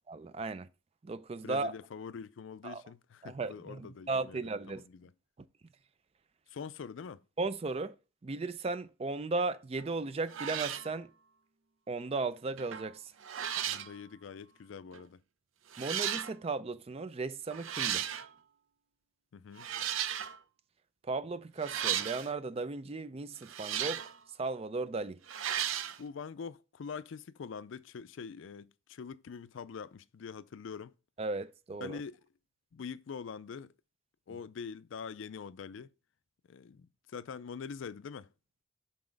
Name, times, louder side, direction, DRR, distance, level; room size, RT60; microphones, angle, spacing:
voice 1, 0.1-0.7 1.0-1.7 2.6-2.8 3.2-4.8 7.4-7.9 8.2-11.1 11.9-13.1 15.8-18.2 21.0-24.0 24.4-25.2 31.2-32.0, right 3 dB, 30° right, 0.4 m, -36 dB
voice 2, 1.4-4.4 4.7-5.1 6.5-7.2 13.7-15.2 19.3-19.7 26.0-30.9 31.8-32.2 32.7-33.7 34.3-35.9 36.5-38.3, left 6 dB, 75° left, 0.4 m, -44 dB
sound 1, 9.8-10.0 10.3-10.9 12.6-12.9 13.2-13.9 14.9-15.0 15.7-16.3 17.5-18.3 19.6-20.4 21.6-22.3 23.4-24.2 25.3-26.0, right 10 dB, 85° right, 0.6 m, -35 dB
5.9 x 4.1 x 5.1 m
head